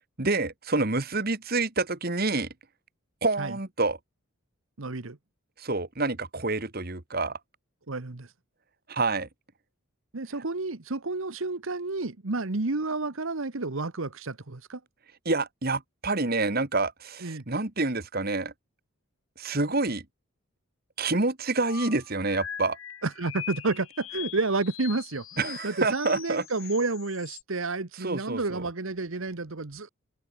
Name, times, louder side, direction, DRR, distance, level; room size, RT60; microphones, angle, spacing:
voice 1, 0.2-2.5 3.2-4.0 5.6-7.4 8.9-9.3 15.3-18.5 19.4-20.1 21.0-22.8 25.4-26.4 28.0-28.6, right 3 dB, 45° right, 1.8 m, -27 dB
voice 2, 4.8-5.2 7.9-8.3 10.1-14.8 17.2-17.4 23.0-29.9, right 3 dB, 70° right, 1.2 m, -30 dB
sound 1, 21.6-27.4, left 10 dB, 70° left, 2.3 m, -42 dB
open air
head